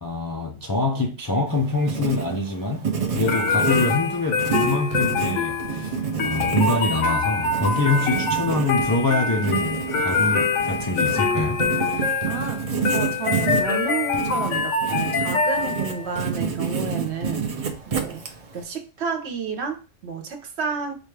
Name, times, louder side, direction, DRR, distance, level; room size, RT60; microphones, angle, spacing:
voice 1, 0.0-5.9 6.2-11.6 11.9-12.1, left 2 dB, 35° left, 0.3 m, -25 dB
Writing, 1.5-18.6, right 6 dB, 45° right, 0.5 m, -29 dB
sound 1, 3.3-16.1, left 4 dB, 80° left, 1.0 m, -25 dB
voice 2, 12.2-12.6 12.9-17.5 17.9-18.2 18.5-20.9, right 5 dB, 65° right, 1.0 m, -30 dB
4.7 x 2.3 x 3.3 m
omnidirectional pair, 1.2 m